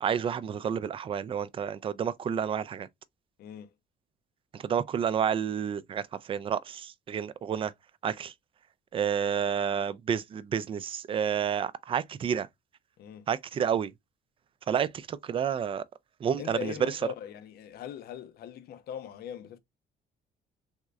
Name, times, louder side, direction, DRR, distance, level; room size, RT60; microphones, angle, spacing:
voice 1, 0.0-2.9 4.5-6.0 6.3-7.7 8.0-8.3 8.9-12.5 13.3-13.9 14.7-15.8 16.2-16.7, right 8 dB, 30° right, 0.4 m, -30 dB
voice 2, 3.4-3.7 13.0-13.3 16.4-19.6, left 9 dB, 65° left, 0.6 m, -40 dB
3.6 x 3.1 x 2.3 m
cardioid pair, 110°, 17 cm